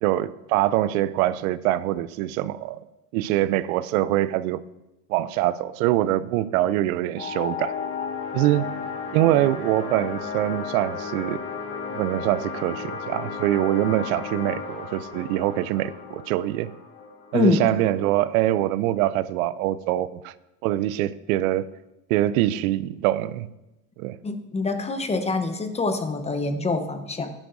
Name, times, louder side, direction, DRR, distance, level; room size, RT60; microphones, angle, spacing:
voice 1, 0.0-2.8 3.1-4.6 5.1-7.7 8.3-8.7 9.1-11.4 11.9-16.7 17.3-20.3 20.6-21.7 22.1-23.5 24.0-24.2, right 14 dB, 75° right, 0.6 m, -24 dB
sound 1, 7.2-18.2, left 5 dB, 30° left, 1.7 m, -34 dB
voice 2, 24.2-27.3, left 3 dB, 15° left, 0.9 m, -25 dB
11.0 x 10.5 x 2.7 m
supercardioid pair, 110°, 43 cm